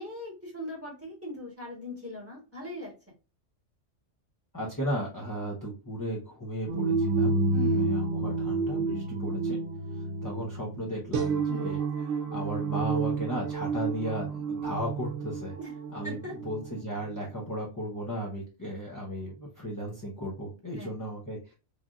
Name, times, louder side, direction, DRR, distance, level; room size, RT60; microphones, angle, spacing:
voice 1, 0.0-2.9 7.5-7.9 11.5-11.7 15.6-15.7 16.0-16.4 20.8-20.9, left 2 dB, 10° right, -3 dB, 1.1 m, -39 dB
voice 2, 4.5-7.3 7.7-9.6 9.9-15.5 15.9-21.5, equal, 20° left, -3 dB, 0.5 m, -35 dB
sound 1, 6.7-16.6, right 3 dB, 75° right, 0.9 m, -30 dB
3.2 x 2.6 x 2.3 m, 0.32 s
omnidirectional pair, 1.3 m